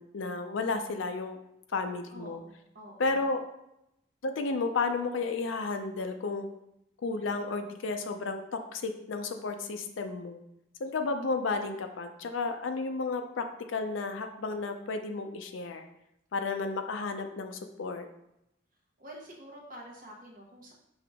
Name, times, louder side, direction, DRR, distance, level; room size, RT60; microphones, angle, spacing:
voice 1, 0.0-1.4 1.7-2.4 3.0-3.4 4.2-6.5 7.0-10.4 10.8-15.9 16.3-18.1, left 3 dB, 75° left, 6 dB, 0.5 m, -32 dB
voice 2, 2.1-3.3 19.0-20.7, right 1 dB, 45° right, -1 dB, 1.0 m, -48 dB
5.4 x 2.8 x 3.5 m, 0.82 s
head